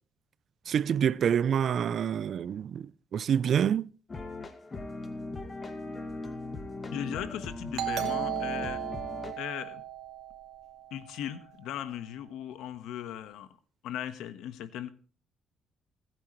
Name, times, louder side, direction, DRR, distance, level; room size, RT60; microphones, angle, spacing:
voice 1, 0.7-3.9, right 8 dB, 60° right, 0.5 m, -27 dB
sound 1, 4.1-9.3, left 3 dB, 30° left, 2.1 m, -39 dB
voice 2, 6.9-8.8 9.4-9.8 10.9-13.6 13.8-14.9, left 10 dB, 85° left, 1.3 m, -38 dB
Doorbell, 7.8-11.1, right 12 dB, 80° right, 2.1 m, -35 dB
26.5 x 9.3 x 3.2 m
cardioid pair, 85°, 0 cm